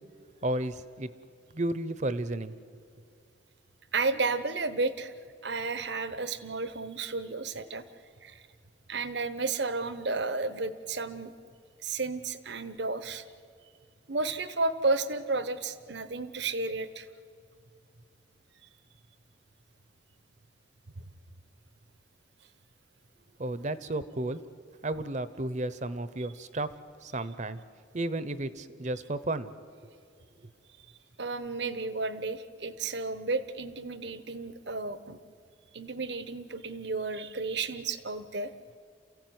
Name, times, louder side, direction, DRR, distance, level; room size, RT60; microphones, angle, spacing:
voice 1, 0.4-1.1 1.5-2.5 23.4-24.4 24.8-26.7 27.0-27.6 27.9-29.5, right 1 dB, 40° right, 14 dB, 0.8 m, -32 dB
voice 2, 3.9-5.1 5.4-7.8 8.2-8.4 8.9-11.3 11.8-13.2 14.1-17.1 31.2-35.2 35.7-38.5, right 3 dB, 60° right, 13 dB, 1.0 m, -32 dB
28.0 x 15.5 x 9.5 m, 2.2 s
head